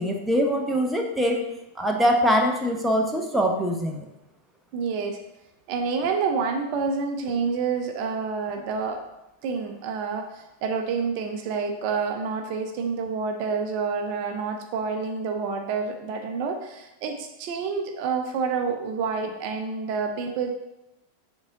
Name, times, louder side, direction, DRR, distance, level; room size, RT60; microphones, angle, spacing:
voice 1, 0.0-1.4 1.7-4.1, equal, 5° right, 1 dB, 0.9 m, -23 dB
voice 2, 4.7-5.2 5.7-9.0 9.4-20.5, right 5 dB, 45° right, 4 dB, 0.6 m, -28 dB
7.2 x 3.7 x 3.9 m, 0.95 s
figure-of-eight pair, 90°, 0 cm